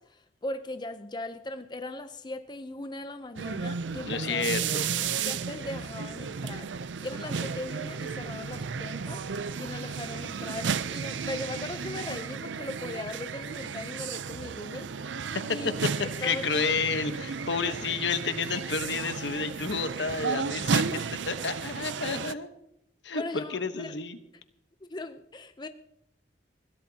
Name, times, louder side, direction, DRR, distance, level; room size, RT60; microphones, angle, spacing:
voice 1, 0.0-4.4 5.2-6.7 7.0-15.7 16.2-16.7 23.1-23.9 24.8-25.7, left 2 dB, 25° left, 9 dB, 0.6 m, -39 dB
sound 1, 3.4-22.3, right 6 dB, 85° right, 0.5 m, -33 dB
voice 2, 4.0-4.9 15.3-15.9 16.2-22.5 23.0-24.2, left 4 dB, 75° left, 9 dB, 1.1 m, -30 dB
21.5 x 16.0 x 2.8 m, 0.77 s
head